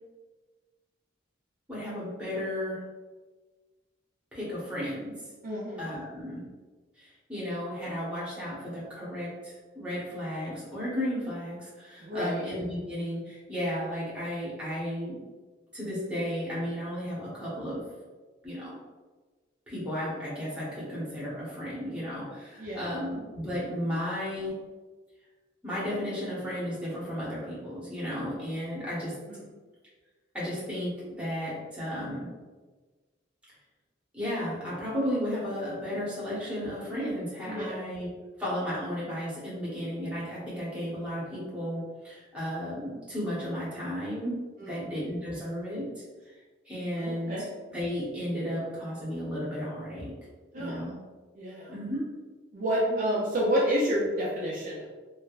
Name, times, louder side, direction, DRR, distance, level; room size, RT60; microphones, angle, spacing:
voice 1, 1.7-2.8 4.3-5.1 5.8-6.4 7.0-15.2 15.7-17.8 18.4-18.8 19.7-24.5 25.6-29.1 30.3-32.3 34.1-38.1 38.4-44.4 44.7-45.9 46.7-47.5 47.7-50.1 50.5-50.9 51.7-52.0 52.8-53.0, equal, 5° right, -8 dB, 0.9 m, -34 dB
voice 2, 5.4-5.9 12.0-12.4 22.6-23.0 29.3-29.4 37.5-37.9 44.6-44.9 46.9-47.5 50.5-50.8 51.3-51.8 52.5-54.9, equal, 45° right, -5 dB, 0.4 m, -29 dB
3.3 x 2.1 x 2.3 m, 1.3 s
head